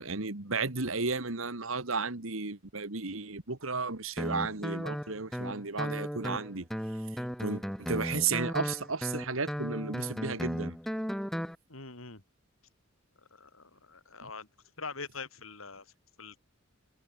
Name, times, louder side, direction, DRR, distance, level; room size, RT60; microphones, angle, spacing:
voice 1, 0.0-6.7 7.4-10.8, right 4 dB, 80° right, 2.2 m, -33 dB
Guitar, 4.2-11.5, equal, ahead, 7.2 m, -36 dB
voice 2, 11.7-12.2 13.3-14.5 14.8-15.9 16.2-16.4, left 4 dB, 80° left, 5.7 m, -43 dB
head